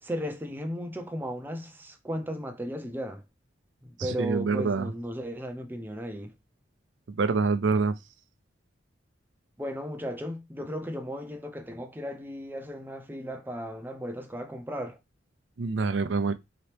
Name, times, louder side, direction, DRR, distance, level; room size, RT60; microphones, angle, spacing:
voice 1, 0.0-3.2 3.8-6.3 9.6-15.0, equal, 10° right, 0.5 m, -35 dB
voice 2, 4.0-4.9 7.1-8.0 15.6-16.3, right 4 dB, 70° right, 0.5 m, -26 dB
4.0 x 2.9 x 3.3 m
head